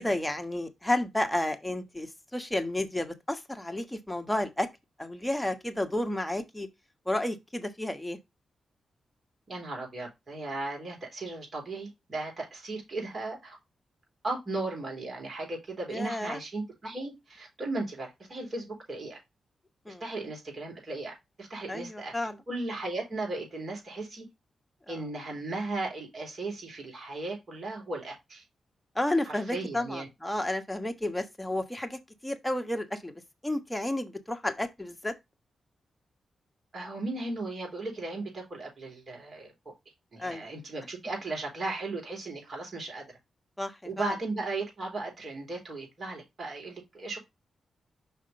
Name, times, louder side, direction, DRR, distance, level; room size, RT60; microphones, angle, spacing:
voice 1, 0.0-4.7 5.0-6.7 7.1-8.2 15.9-16.4 19.9-20.0 21.7-22.4 24.9-25.0 28.9-33.1 33.4-35.1 40.2-40.5 43.6-44.1, left 1 dB, 10° left, 1.3 m, -31 dB
voice 2, 9.5-13.6 14.2-19.2 20.0-22.1 22.5-24.2 24.9-28.4 29.3-30.1 36.7-39.5 40.1-43.1 43.8-47.2, right 2 dB, 50° right, 4.0 m, -36 dB
5.6 x 3.6 x 5.2 m
supercardioid pair, 50°, 0 cm